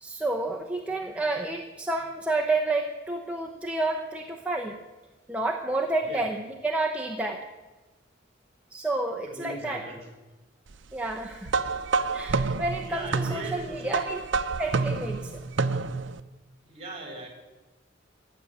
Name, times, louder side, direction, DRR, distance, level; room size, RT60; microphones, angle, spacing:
voice 1, 0.0-4.8 5.3-6.4 6.6-7.4 8.7-9.8 10.9-11.5 12.1-14.2 14.6-15.4, right 2 dB, 5° right, 0 dB, 0.8 m, -30 dB
voice 2, 0.8-1.2 6.0-6.3 9.3-10.1 12.8-14.0 16.6-17.3, right 2 dB, 35° right, 2 dB, 3.9 m, -40 dB
sound 1, 11.5-16.2, right 4 dB, 70° right, 0.6 m, -28 dB
15.0 x 7.3 x 9.8 m, 1.1 s
head